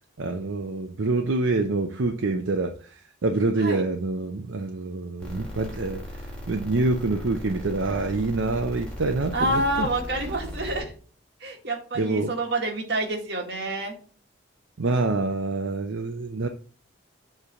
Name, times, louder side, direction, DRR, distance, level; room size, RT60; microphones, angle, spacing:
voice 1, 0.2-9.9 12.0-12.3 14.8-16.5, right 3 dB, 80° right, 0.6 m, -26 dB
sound 1, 5.2-10.8, equal, 5° left, 2.2 m, -37 dB
voice 2, 9.3-10.9 11.4-14.0, right 1 dB, 55° right, 1.8 m, -28 dB
7.3 x 3.3 x 5.7 m
head